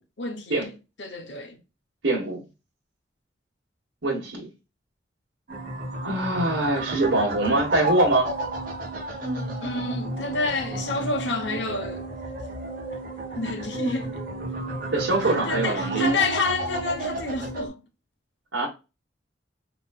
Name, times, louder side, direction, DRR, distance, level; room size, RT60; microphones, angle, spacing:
voice 1, 0.2-0.7 1.0-1.6 9.6-12.1 13.4-14.2 15.2-17.8, left 3 dB, 70° left, 1.0 m, -29 dB
voice 2, 2.0-2.4 4.0-4.5 6.0-8.3 14.9-16.1 18.5-18.7, right 2 dB, 75° right, 1.2 m, -24 dB
sound 1, 5.5-17.7, right 2 dB, 50° right, 1.3 m, -31 dB
4.2 x 3.0 x 2.3 m
head